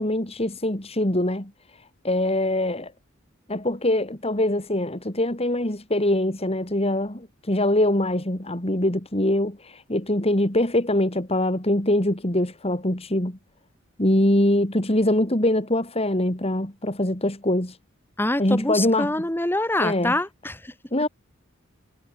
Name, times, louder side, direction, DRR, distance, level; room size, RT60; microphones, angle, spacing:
voice 1, 0.0-1.5 2.0-2.9 3.5-13.4 14.0-17.8 18.4-19.1 19.8-20.2 20.9-21.1, left 1 dB, 30° left, 3.1 m, -23 dB
voice 2, 18.2-20.7, left 1 dB, 10° left, 1.5 m, -25 dB
head